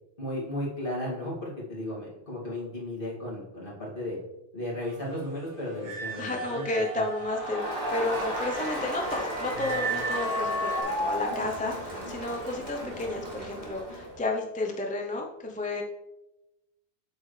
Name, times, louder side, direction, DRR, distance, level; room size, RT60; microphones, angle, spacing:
voice 1, 0.2-4.2 4.5-7.0, left 1 dB, 50° left, -6 dB, 2.5 m, -35 dB
sound 1, 5.8-10.8, right 2 dB, 85° right, 1.7 m, -35 dB
voice 2, 6.2-7.6 7.9-15.8, left 2 dB, 10° left, 1 dB, 0.6 m, -32 dB
Crowd, 7.2-14.2, equal, 40° right, 2.1 m, -34 dB
8.2 x 6.3 x 3.2 m, 0.96 s
omnidirectional pair, 1.1 m